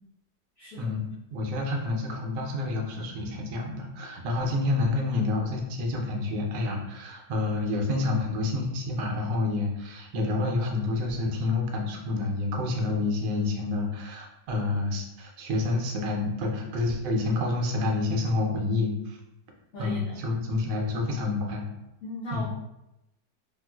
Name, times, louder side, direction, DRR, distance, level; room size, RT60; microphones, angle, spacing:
voice 1, 0.6-0.9 19.7-20.1 22.0-22.5, left 1 dB, 55° left, -9 dB, 1.0 m, -37 dB
voice 2, 1.3-19.2 19.8-21.7 22.3-22.5, left 2 dB, 75° right, 1 dB, 1.2 m, -28 dB
3.6 x 2.4 x 2.3 m, 0.89 s
omnidirectional pair, 1.9 m